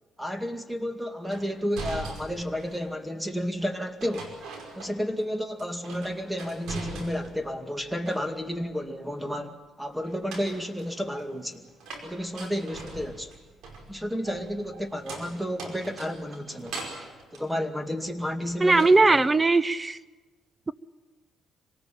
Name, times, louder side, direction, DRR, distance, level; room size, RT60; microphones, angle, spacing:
voice 1, 0.2-4.4 4.7-11.7 12.0-13.3 13.9-16.9 17.3-19.2, equal, 5° right, 7 dB, 2.2 m, -32 dB
sound 1, 1.3-3.0 4.0-5.3 5.6-7.5 7.8-8.6 10.0-18.3 18.7-19.3, right 3 dB, 85° right, 5.1 m, -42 dB
voice 2, 18.6-20.0 20.7-20.8, right 3 dB, 20° right, 18 dB, 0.8 m, -19 dB
26.0 x 19.0 x 8.9 m, 1.3 s
cardioid pair, 90°, 0 cm